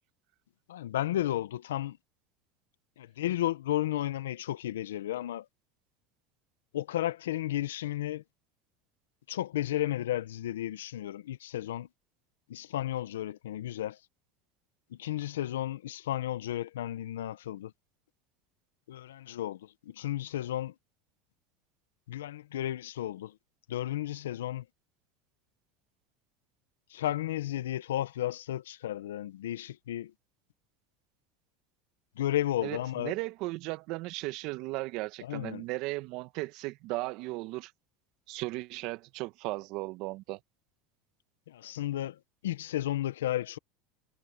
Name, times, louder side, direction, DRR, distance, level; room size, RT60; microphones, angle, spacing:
voice 1, 0.7-2.0 3.0-5.5 6.7-8.2 9.3-11.9 12.5-14.0 14.9-17.7 18.9-20.7 22.1-23.4 23.7-24.7 26.9-30.1 32.2-33.1 35.2-35.6 41.5-43.6, left 13 dB, 85° left, 1.1 m, -33 dB
voice 2, 32.6-37.7 38.3-40.4, right 21 dB, 60° right, 1.5 m, -36 dB
hypercardioid pair, 95°, 0 cm